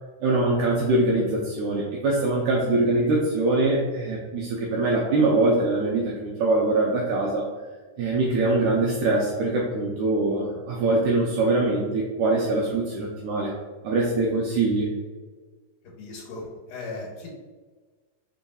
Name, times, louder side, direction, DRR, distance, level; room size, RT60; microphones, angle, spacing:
voice 1, 0.2-7.5 8.0-13.5 13.8-14.9, right 2 dB, 75° right, -3 dB, 1.8 m, -23 dB
voice 2, 16.0-17.3, left 3 dB, 80° left, -3 dB, 2.4 m, -37 dB
5.3 x 3.5 x 2.3 m, 1.3 s
omnidirectional pair, 3.8 m